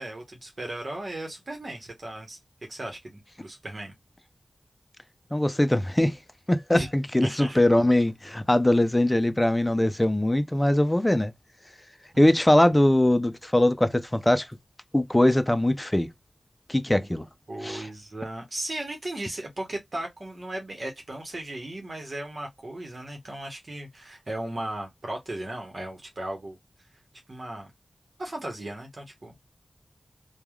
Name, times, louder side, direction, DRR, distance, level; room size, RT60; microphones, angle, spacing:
voice 1, 0.0-2.4 2.7-3.9 6.7-6.9 7.2-7.6 17.0-17.1 17.5-26.6 27.3-27.7 28.2-29.3, right 1 dB, 55° right, 1.1 m, -36 dB
voice 2, 5.3-6.2 6.5-11.3 12.2-14.5 14.9-16.1 16.7-17.3 17.6-17.9, left 1 dB, 15° left, 0.5 m, -21 dB
3.2 x 2.3 x 2.3 m
wide cardioid pair, 60°, 0 cm